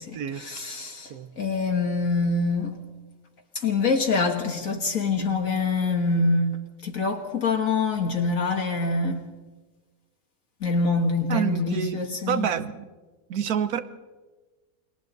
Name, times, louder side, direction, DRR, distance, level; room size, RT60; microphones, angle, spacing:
voice 1, 0.0-2.7 3.6-6.5 6.8-9.2 10.6-12.5, left 3 dB, 60° left, 1.9 m, -25 dB
voice 2, 11.3-12.9 13.3-13.8, right 8 dB, 75° right, 1.4 m, -28 dB
29.0 x 22.5 x 4.0 m
omnidirectional pair, 1.6 m